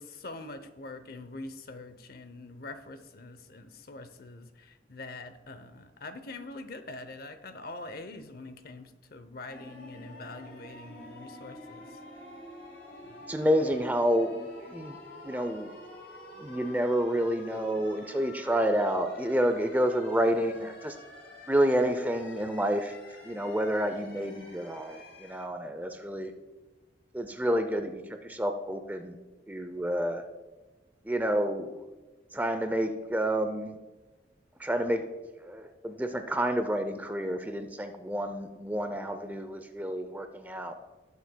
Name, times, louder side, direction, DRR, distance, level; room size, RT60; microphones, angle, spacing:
voice 1, 0.0-12.0 13.0-13.3, left 2 dB, 55° left, 10 dB, 0.7 m, -44 dB
sound 1, 9.5-25.5, left 1 dB, 75° left, 2.1 m, -48 dB
voice 2, 13.3-15.0 15.2-15.7 16.4-20.9 21.5-22.9 23.2-26.3 27.1-29.2 29.5-30.2 31.1-31.8 32.3-33.7 34.6-35.0 35.4-40.7, equal, 10° right, 7 dB, 0.5 m, -29 dB
17.5 x 7.0 x 2.2 m, 1.2 s
head